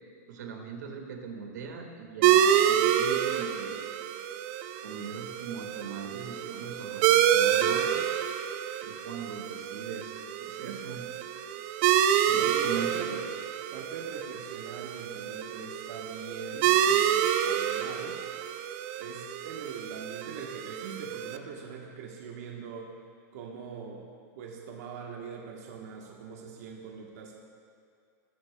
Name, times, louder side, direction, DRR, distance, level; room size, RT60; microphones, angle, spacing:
voice 1, 0.3-3.7 4.8-7.9 8.8-11.1 12.3-13.2, right 6 dB, 90° right, 3 dB, 1.6 m, -40 dB
sound 1, 2.2-21.4, right 10 dB, 45° right, 0.5 m, -28 dB
voice 2, 12.3-13.3 13.7-18.2 19.0-22.9 23.3-24.1 24.3-27.4, right 6 dB, 65° right, 0 dB, 1.1 m, -42 dB
19.5 x 8.3 x 2.2 m, 2.4 s
supercardioid pair, 155°, 9 cm